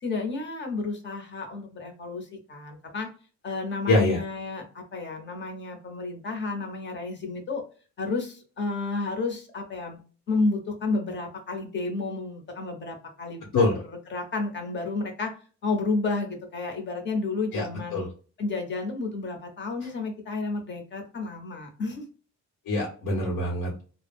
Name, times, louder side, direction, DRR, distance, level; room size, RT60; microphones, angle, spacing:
voice 1, 0.0-3.1 3.4-7.6 8.0-10.0 10.3-15.3 15.6-18.0 18.4-22.0, left 3 dB, 35° left, 3 dB, 0.7 m, -31 dB
voice 2, 3.9-4.2 13.5-13.7 17.5-18.1 22.7-23.7, left 2 dB, 85° left, -2 dB, 0.9 m, -24 dB
2.2 x 2.0 x 3.3 m, 0.39 s
wide cardioid pair, 160°, 31 cm